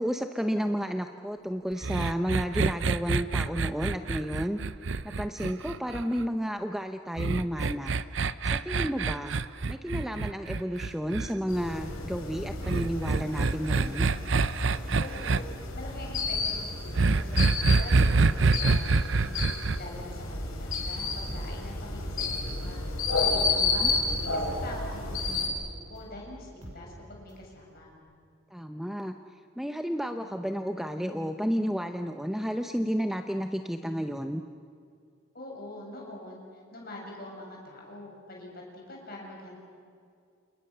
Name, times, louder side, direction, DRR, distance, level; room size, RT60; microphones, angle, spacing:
voice 1, 0.0-4.6 5.0-7.9 8.4-9.4 9.7-14.1 23.6-23.9 28.5-29.1 29.6-34.4, equal, ahead, 6 dB, 0.7 m, -31 dB
sound 1, 1.8-6.2 7.2-11.3 12.6-15.4 17.0-19.8, right 4 dB, 55° right, 0.7 m, -26 dB
sound 2, 11.5-25.5, left 3 dB, 75° left, 5.2 m, -31 dB
voice 2, 14.9-19.4 19.8-22.8 23.2-23.9 24.3-27.9 35.3-39.6, left 1 dB, 45° left, -1 dB, 7.6 m, -44 dB
sound 3, 17.3-19.5 19.8-27.5 27.8-27.9, equal, 35° right, 6.8 m, -47 dB
29.0 x 29.0 x 6.8 m, 2.4 s
head